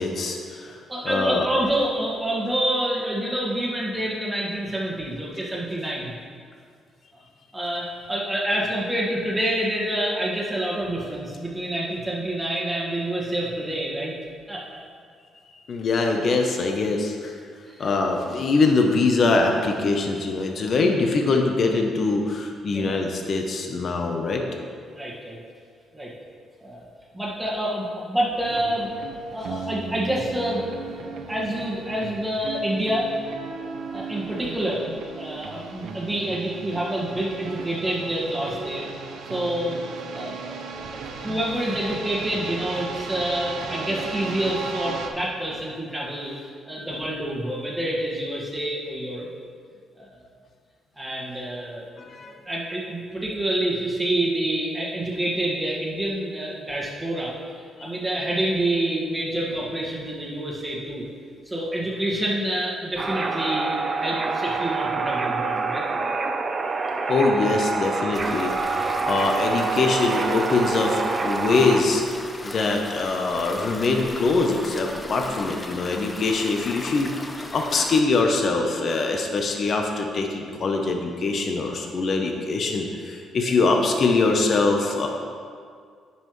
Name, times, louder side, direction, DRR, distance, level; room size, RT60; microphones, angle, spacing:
voice 1, 0.0-0.8 1.0-1.5 15.7-17.3 17.8-24.4 52.0-52.3 66.5-66.6 66.8-85.1, left 3 dB, 50° left, 3 dB, 0.8 m, -23 dB
voice 2, 0.9-6.1 7.5-14.1 14.5-14.8 17.7-17.9 22.6-23.0 24.9-25.4 25.9-26.1 26.6-26.9 27.1-28.9 29.2-30.7 31.0-33.1 33.9-34.9 35.2-38.9 39.2-39.8 40.1-40.6 40.9-49.3 50.0-50.3 51.0-51.9 52.4-57.4 57.8-61.0 61.5-63.7 64.0-65.8 83.4-83.5, right 1 dB, 10° right, -5 dB, 1.7 m, -27 dB
sound 1, 28.4-45.1, right 5 dB, 75° right, 0.7 m, -36 dB
sound 2, 63.0-71.8, right 4 dB, 35° right, 0.6 m, -26 dB
sound 3, 68.1-78.0, left 1 dB, 20° left, 0.6 m, -37 dB
9.6 x 5.6 x 3.2 m, 2.1 s
cardioid pair, 90°, 0 cm